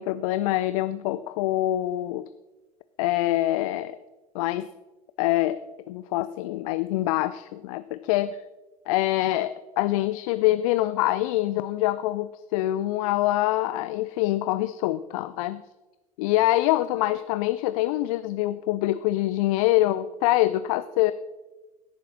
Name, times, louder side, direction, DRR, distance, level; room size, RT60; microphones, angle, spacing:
voice 1, 0.0-2.3 3.0-4.0 4.3-4.7 5.2-5.6 5.9-8.3 8.9-15.6 16.2-21.1, left 15 dB, 65° left, 14 dB, 0.4 m, -25 dB
16.5 x 7.1 x 4.4 m, 1.1 s
figure-of-eight pair, 65°, 19 cm